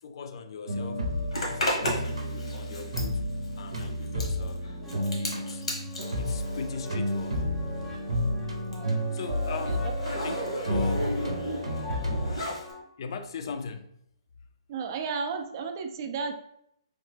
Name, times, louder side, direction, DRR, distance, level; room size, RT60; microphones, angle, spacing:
voice 1, 0.0-1.1 1.5-3.2 3.6-7.4 9.1-10.0 10.2-11.3 13.0-13.9, left 5 dB, 55° left, 8 dB, 0.4 m, -39 dB
sound 1, 0.7-12.3, equal, 85° right, 0.7 m, -31 dB
Zipper (clothing), 1.3-7.5 7.8-12.7, equal, 85° left, 1.1 m, -35 dB
sound 2, 4.8-12.8, equal, 5° left, 0.6 m, -44 dB
voice 2, 14.7-16.3, right 5 dB, 40° right, 6 dB, 0.3 m, -33 dB
3.2 x 2.0 x 3.2 m, 0.74 s
hypercardioid pair, 145°, 3 cm